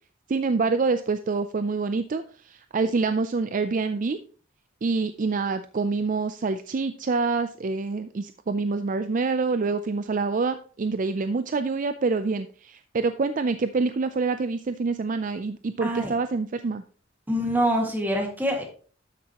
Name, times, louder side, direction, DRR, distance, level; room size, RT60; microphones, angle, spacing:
voice 1, 0.3-4.2 4.8-16.8, right 4 dB, 40° right, 10 dB, 0.4 m, -26 dB
voice 2, 15.8-16.1 17.3-18.6, equal, 10° right, 1 dB, 1.9 m, -25 dB
12.5 x 6.3 x 2.9 m, 0.41 s
head